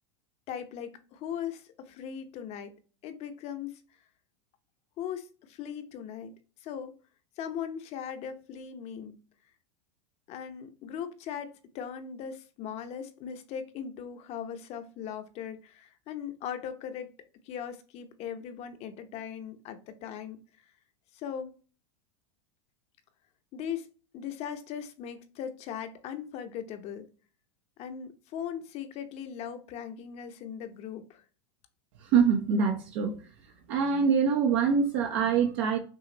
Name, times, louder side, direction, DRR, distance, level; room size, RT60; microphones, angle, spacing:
voice 1, 0.5-2.7 3.0-3.8 5.0-6.3 6.6-7.0 7.4-9.2 10.3-17.1 17.4-20.4 21.1-21.6 23.5-23.9 24.1-27.1 27.8-31.2, left 8 dB, 45° left, 0.8 m, -39 dB
voice 2, 32.0-33.2 33.7-35.8, right 6 dB, 60° right, 0.8 m, -24 dB
6.2 x 2.4 x 3.0 m
hypercardioid pair, 110°, 15 cm